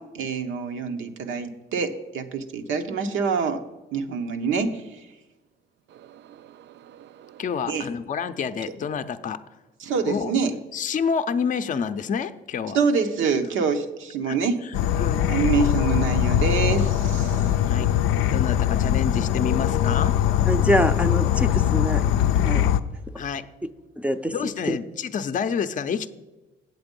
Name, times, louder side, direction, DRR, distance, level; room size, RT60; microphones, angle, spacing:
voice 1, 0.0-3.6 3.9-5.0 7.7-7.9 9.8-10.5 12.7-14.6 15.3-17.4, right 5 dB, 85° right, 0.9 m, -26 dB
voice 2, 5.9-7.4 17.3-18.3, right 10 dB, 65° right, 0.4 m, -49 dB
voice 3, 7.4-9.4 10.1-10.3 10.7-12.8 14.3-14.4 14.6-14.7 15.0-15.3 17.6-17.9 18.2-20.2 23.2-23.5 24.3-26.1, left 6 dB, 40° left, 0.5 m, -28 dB
Insect / Frog, 14.7-22.8, left 10 dB, 90° left, 0.4 m, -21 dB
voice 4, 20.5-22.0 22.4-22.6 24.0-24.8, equal, 5° right, 0.5 m, -25 dB
8.0 x 7.7 x 5.3 m
cardioid pair, 90°, 20 cm